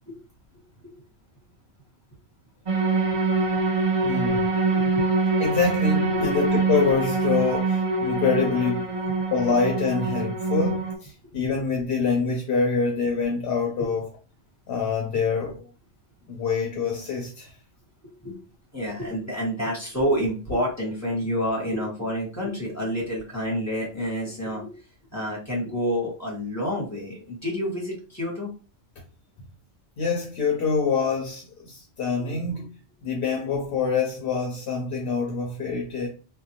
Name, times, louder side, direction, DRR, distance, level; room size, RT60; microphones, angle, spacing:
sound 1, 2.7-10.9, right 3 dB, 45° right, 0.4 m, -24 dB
voice 1, 4.0-4.5 5.4-8.8 9.3-14.1 14.7-15.7 16.3-17.5 30.0-32.7 33.0-36.1, left 5 dB, 60° left, 0.7 m, -25 dB
voice 2, 4.7-5.0 6.1-6.3 8.9-9.0 11.4-11.5 18.0-18.4 18.7-24.7 25.1-28.5 32.2-32.3, equal, 15° left, 1.0 m, -29 dB
2.5 x 2.1 x 2.8 m
omnidirectional pair, 1.3 m